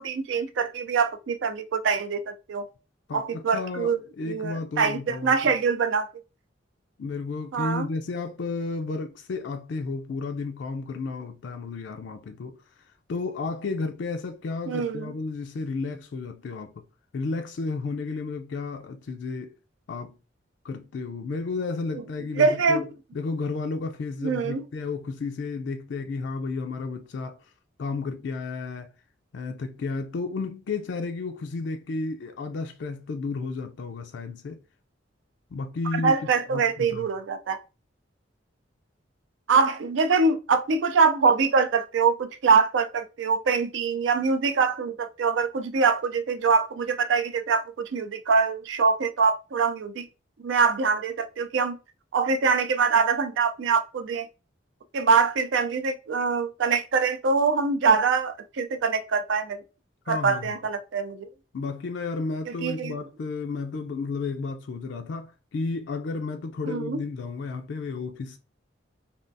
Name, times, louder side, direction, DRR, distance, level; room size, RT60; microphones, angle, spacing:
voice 1, 0.0-2.6 3.1-4.0 4.3-6.1 7.5-7.9 14.7-15.1 22.4-22.9 24.2-24.6 36.0-37.6 39.5-50.0 50.4-51.8 52.1-54.3 54.9-59.6 60.1-61.3 62.6-62.9 66.7-67.0, right 5 dB, 75° right, 0.4 m, -24 dB
voice 2, 3.1-5.5 7.0-12.6 13.1-16.8 17.1-19.6 19.9-20.2 20.6-22.8 23.1-27.4 27.8-28.9 29.3-34.6 35.5-36.2 36.5-37.1 60.1-60.6 61.5-68.4, left 4 dB, 65° left, 0.4 m, -32 dB
3.4 x 2.3 x 2.5 m
head